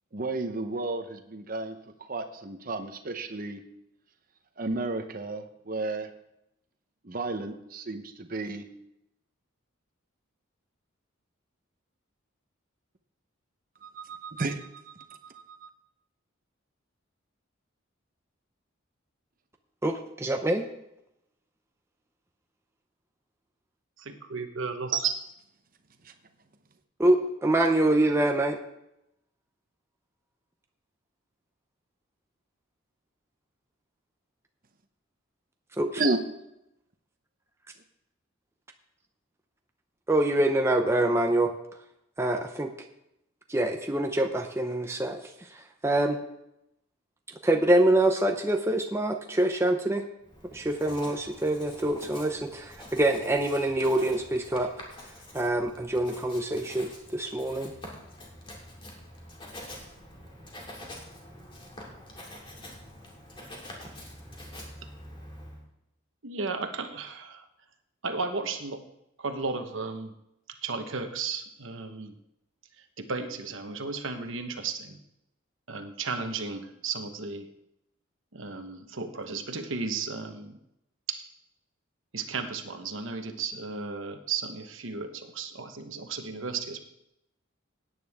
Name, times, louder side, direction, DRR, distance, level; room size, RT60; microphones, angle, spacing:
voice 1, 0.1-3.6 4.6-6.1 7.0-8.6 13.8-15.7 26.0-26.1 36.0-36.2, right 2 dB, 40° right, 7 dB, 0.9 m, -33 dB
voice 2, 19.8-20.7 27.0-28.6 35.8-36.0 40.1-41.5 42.2-42.7 43.5-46.2 47.4-50.0 50.5-54.7 55.3-57.7, right 1 dB, 15° right, 4 dB, 0.6 m, -25 dB
voice 3, 24.0-25.1 66.2-67.5 68.0-68.8 69.2-70.1 70.5-72.2 72.8-75.0 75.7-77.5 78.3-80.6 81.1-81.2 82.1-86.8, right 4 dB, 65° right, 7 dB, 1.1 m, -34 dB
Writing, 50.2-65.6, left 1 dB, 25° left, 2.5 m, -46 dB
17.0 x 9.2 x 3.6 m, 0.84 s
head